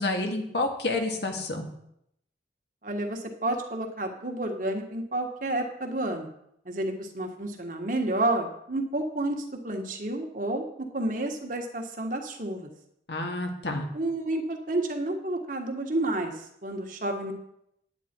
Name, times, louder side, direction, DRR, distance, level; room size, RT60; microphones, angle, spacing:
voice 1, 0.0-1.6 13.1-13.9, left 2 dB, 75° left, 3 dB, 1.8 m, -29 dB
voice 2, 2.8-6.3 6.6-12.7 13.9-17.3, right 1 dB, 50° right, 3 dB, 1.5 m, -30 dB
9.9 x 9.2 x 4.5 m, 0.76 s
head